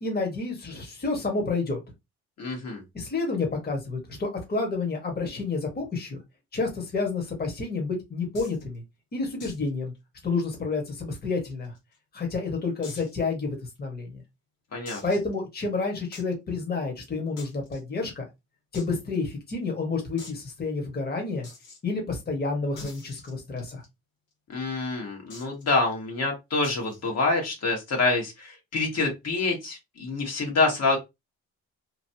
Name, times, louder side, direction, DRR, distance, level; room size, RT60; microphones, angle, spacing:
voice 1, 0.0-1.8 2.9-6.2 6.5-8.8 9.1-9.9 10.2-11.7 12.1-14.2 15.0-18.2 18.7-21.5 21.8-23.8, left 3 dB, 30° left, 1 dB, 1.3 m, -29 dB
voice 2, 2.4-2.8 14.7-15.0 24.5-31.0, left 3 dB, 55° left, 1 dB, 1.5 m, -26 dB
sound 1, 8.4-8.6 9.4-9.7 10.0-10.1 10.4-10.5 11.2-12.0 12.8-13.2 13.8-13.9 14.9-15.3 16.1-16.3 17.4-17.8 18.7-18.9 19.1-19.2 19.5-19.6 20.2-20.4 21.4-21.8 22.8-23.9 25.3-25.6 26.6-27.0, left 3 dB, 85° left, 1.7 m, -44 dB
3.0 x 2.5 x 2.8 m, 0.22 s
cardioid pair, 90°, 30 cm